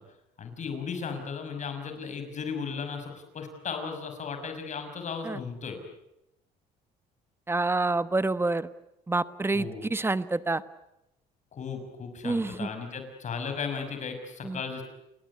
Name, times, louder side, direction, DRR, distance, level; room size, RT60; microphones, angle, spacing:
voice 1, 0.4-5.8 9.5-9.9 11.5-14.8, left 5 dB, 45° left, 6 dB, 6.1 m, -36 dB
voice 2, 7.5-8.7 9.1-10.6 12.2-12.7 14.4-14.6, right 2 dB, 15° right, 15 dB, 1.1 m, -27 dB
29.5 x 19.0 x 9.7 m, 0.87 s
cardioid pair, 110°, 17 cm